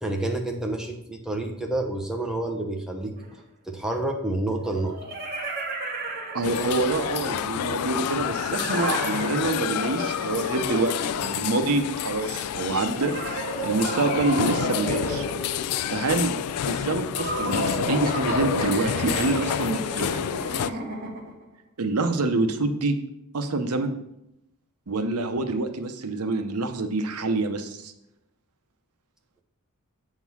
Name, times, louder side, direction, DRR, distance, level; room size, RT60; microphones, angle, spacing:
voice 1, 0.0-3.1 3.7-5.0 5.5-5.7, right 2 dB, 5° right, 2 dB, 0.9 m, -29 dB
sound 1, 3.2-3.3 4.6-7.0 8.2-11.7 12.9-16.0 17.1-21.4, right 2 dB, 45° right, 1.3 m, -33 dB
voice 2, 6.3-13.1 13.6-15.3 15.9-16.4 16.7-20.3 21.8-23.0 23.3-24.0 24.9-27.9, right 3 dB, 80° right, 7 dB, 0.8 m, -26 dB
sound 2, 6.4-20.7, left 9 dB, 90° left, 0.3 m, -29 dB
8.1 x 3.8 x 6.1 m, 0.83 s
head